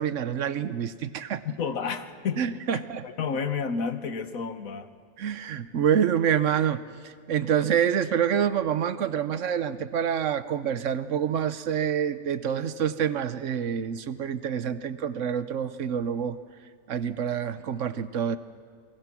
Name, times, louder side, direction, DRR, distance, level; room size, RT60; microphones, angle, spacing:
voice 1, 0.0-1.4 2.4-3.1 5.2-16.4 16.9-18.4, right 8 dB, 65° right, 13 dB, 1.1 m, -27 dB
voice 2, 1.4-2.4 2.7-4.9, left 5 dB, 85° left, 10 dB, 1.6 m, -31 dB
29.0 x 22.0 x 6.1 m, 2.1 s
omnidirectional pair, 1.4 m